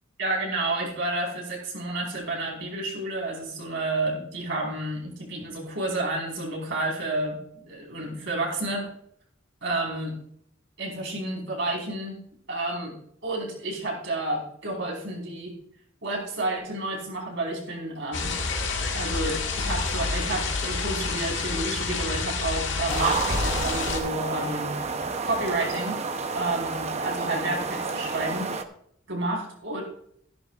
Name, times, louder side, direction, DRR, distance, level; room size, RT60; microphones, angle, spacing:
voice 1, 0.2-7.4 7.7-8.9 9.6-10.2 10.8-12.2 12.5-15.5 16.0-18.3 18.9-24.7 25.2-26.0 26.3-28.5 29.1-29.8, right 2 dB, 65° right, -1 dB, 4.9 m, -30 dB
sound 1, 18.1-24.0, left 4 dB, 65° left, 1.8 m, -28 dB
sound 2, 22.9-28.6, right 4 dB, 35° right, 0.8 m, -30 dB
14.5 x 11.0 x 2.5 m, 0.67 s
head